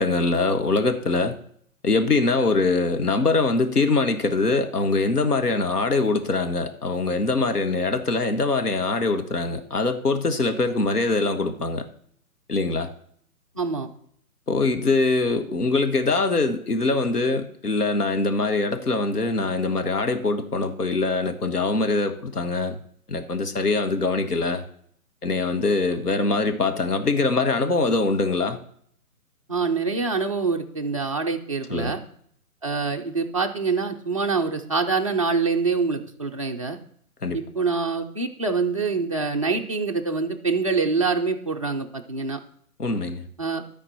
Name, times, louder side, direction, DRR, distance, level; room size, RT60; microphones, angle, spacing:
voice 1, 0.0-1.3 1.8-11.8 12.5-12.9 14.5-22.8 23.1-24.6 25.2-28.6 31.7-32.0 37.2-37.4 42.8-43.2, left 3 dB, 90° left, 6 dB, 1.4 m, -23 dB
voice 2, 13.6-13.9 29.5-32.0 32.6-36.8 37.3-42.4 43.4-43.6, right 4 dB, 25° right, 2 dB, 0.4 m, -25 dB
12.5 x 4.4 x 5.6 m, 0.64 s
figure-of-eight pair, 140°, 45 cm